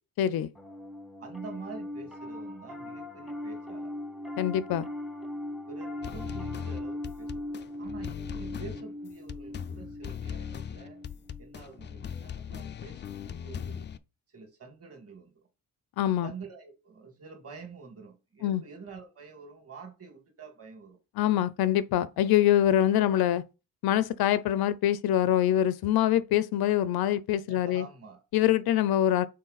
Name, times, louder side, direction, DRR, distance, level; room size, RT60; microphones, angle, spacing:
voice 1, 0.2-0.5 4.4-4.9 16.0-16.3 18.4-18.6 21.2-23.4 23.8-27.9 28.3-29.3, left 11 dB, 75° left, 0.6 m, -24 dB
Piano, 0.5-12.0, left 1 dB, ahead, 0.7 m, -40 dB
voice 2, 1.2-4.0 5.7-11.0 11.4-13.9 14.3-15.3 16.2-21.0 22.7-23.2 27.5-28.2, right 5 dB, 40° right, 2.2 m, -47 dB
sound 1, 6.0-14.0, left 8 dB, 30° left, 0.4 m, -39 dB
6.5 x 4.3 x 4.0 m
cardioid pair, 145°, 38 cm